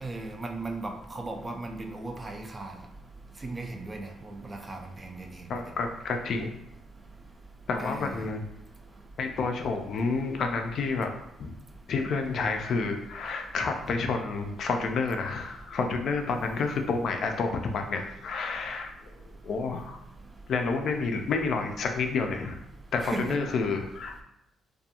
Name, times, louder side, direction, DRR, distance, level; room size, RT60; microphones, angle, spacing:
voice 1, 0.0-2.7 3.4-5.5 7.8-8.2 23.0-23.4, right 2 dB, 25° right, 3 dB, 0.4 m, -37 dB
voice 2, 5.5-6.5 7.7-8.4 9.2-11.1 11.4-11.5 11.9-18.9 19.4-20.0 20.5-22.6 22.9-24.2, left 4 dB, 65° left, 4 dB, 0.4 m, -29 dB
2.4 x 2.3 x 2.8 m, 0.80 s
cardioid pair, 90°, 0 cm